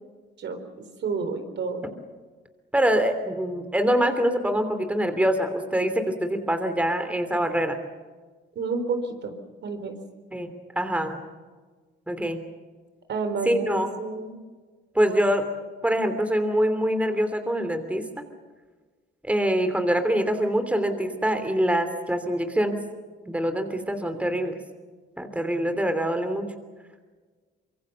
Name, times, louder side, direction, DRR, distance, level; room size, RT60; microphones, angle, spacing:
voice 1, 1.0-1.8 8.6-9.3 9.6-10.0 13.1-14.3, right 4 dB, 65° right, 7 dB, 4.1 m, -29 dB
voice 2, 2.7-7.8 10.3-11.2 12.1-12.4 13.4-13.9 14.9-15.5 15.8-18.0 19.2-22.8 23.3-24.6 25.2-26.5, equal, 5° right, 8 dB, 3.0 m, -24 dB
25.0 x 22.5 x 6.9 m, 1.4 s
cardioid pair, 90°, 20 cm